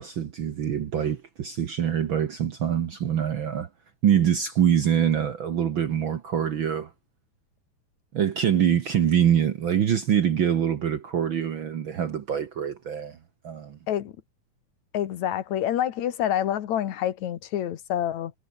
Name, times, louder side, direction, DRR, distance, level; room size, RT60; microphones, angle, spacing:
voice 1, 0.0-3.7 4.0-6.9 8.1-13.2 13.4-13.8, right 9 dB, 55° right, 1.5 m, -24 dB
voice 2, 14.9-18.3, left 11 dB, 70° left, 2.6 m, -27 dB
omnidirectional pair, 3.5 m